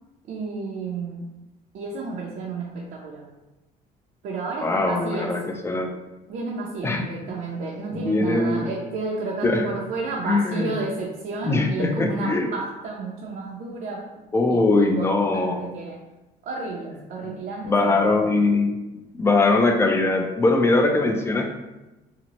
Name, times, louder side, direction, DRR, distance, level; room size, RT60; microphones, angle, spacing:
voice 1, 0.3-1.3 1.7-3.3 4.2-5.4 6.3-14.2 14.5-16.0 16.4-18.5, right 3 dB, 60° right, -3 dB, 0.5 m, -31 dB
voice 2, 4.6-5.9 6.8-7.0 7.9-8.7 9.4-9.6 10.3-10.7 11.4-12.5 14.3-15.7 17.6-18.8 19.1-21.5, left 3 dB, 15° left, 4 dB, 0.3 m, -21 dB
2.8 x 2.0 x 2.8 m, 1.0 s
cardioid pair, 110°, 17 cm